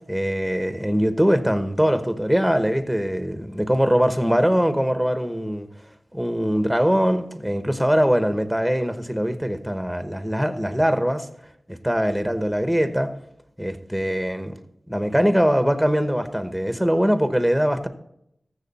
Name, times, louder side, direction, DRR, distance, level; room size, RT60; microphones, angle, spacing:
voice 1, 0.1-5.7 6.1-11.3 11.7-13.1 13.6-14.5 14.9-17.9, equal, ahead, 1.1 m, -22 dB
14.0 x 7.1 x 4.2 m
wide cardioid pair, 65°, 0 cm